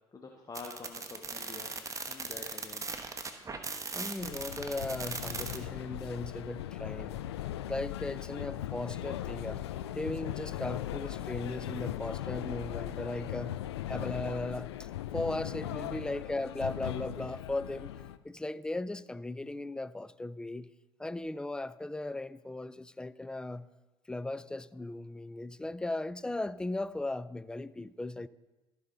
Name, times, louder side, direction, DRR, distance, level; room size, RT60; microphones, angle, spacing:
voice 1, 0.1-1.8 2.0-2.9, left 3 dB, 25° left, 1.1 m, -46 dB
sound 1, 0.5-5.6, right 4 dB, 25° right, 1.1 m, -38 dB
voice 2, 3.9-7.3 7.7-9.6 9.9-13.6 13.9-17.9 18.2-20.7 21.0-23.7 24.1-28.3, left 2 dB, 5° left, 0.3 m, -37 dB
sound 2, 4.2-18.2, left 12 dB, 85° left, 0.4 m, -39 dB
14.5 x 5.5 x 3.8 m
hypercardioid pair, 65°, 13 cm